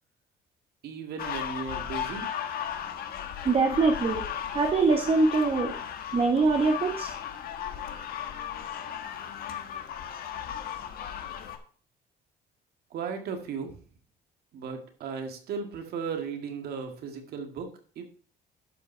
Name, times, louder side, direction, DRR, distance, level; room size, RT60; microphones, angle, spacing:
voice 1, 0.8-2.3 12.9-13.8 14.5-18.0, right 5 dB, 70° right, 5 dB, 2.1 m, -36 dB
sound 1, 1.2-11.6, left 9 dB, 65° left, 1.3 m, -36 dB
voice 2, 3.4-4.2 4.5-5.7 6.1-7.1, right 3 dB, 35° right, 2 dB, 1.2 m, -23 dB
11.5 x 5.4 x 4.5 m, 0.44 s
cardioid pair, 110°, 17 cm